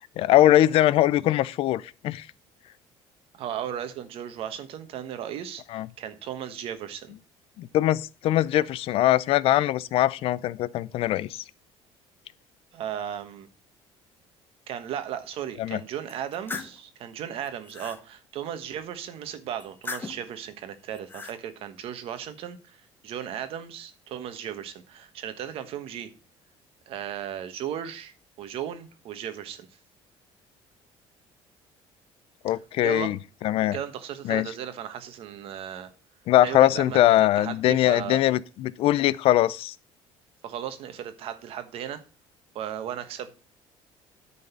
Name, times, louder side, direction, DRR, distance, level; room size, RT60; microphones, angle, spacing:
voice 1, 0.2-2.3 5.7-5.9 7.6-11.4 15.6-15.8 32.4-33.2 33.4-33.8 34.2-34.5 36.3-39.7, left 14 dB, 60° left, 0.5 m, -22 dB
voice 2, 3.3-7.1 12.7-13.5 14.7-22.8 23.0-26.1 26.9-29.7 32.8-33.1 33.7-35.9 36.4-38.2 40.4-42.0 42.5-43.3, right 10 dB, 60° right, 1.2 m, -36 dB
sound 1, 16.1-16.8 17.4-18.0 19.6-20.3 20.9-21.4, left 4 dB, 20° left, 0.9 m, -38 dB
9.6 x 4.0 x 6.8 m
cardioid pair, 135°, 11 cm